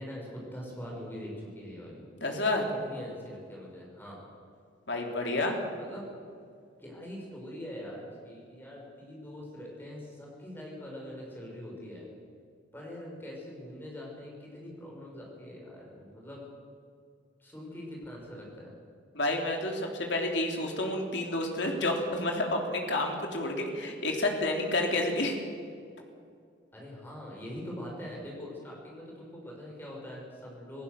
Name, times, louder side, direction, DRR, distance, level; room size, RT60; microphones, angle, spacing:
voice 1, 0.0-2.1 2.7-4.3 5.8-6.1 6.8-12.1 12.7-16.4 17.4-18.7 26.7-30.8, left 1 dB, 10° left, -3 dB, 6.4 m, -43 dB
voice 2, 2.2-2.7 4.9-5.6 19.1-25.4, left 2 dB, 65° left, 2 dB, 3.2 m, -30 dB
27.0 x 16.0 x 7.0 m, 2.3 s
head